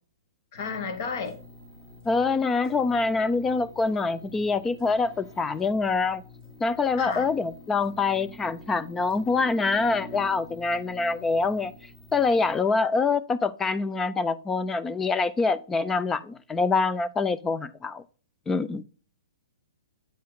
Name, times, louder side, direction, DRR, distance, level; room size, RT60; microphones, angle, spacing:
voice 1, 0.5-1.4 7.0-7.3, left 5 dB, 45° left, 1.3 m, -32 dB
sound 1, 0.5-12.6, left 1 dB, 30° left, 2.8 m, -47 dB
voice 2, 2.1-6.2 6.6-11.7 12.1-18.0 18.5-18.8, left 4 dB, 10° left, 0.3 m, -25 dB
8.7 x 5.5 x 2.2 m
hypercardioid pair, 160°, 2 cm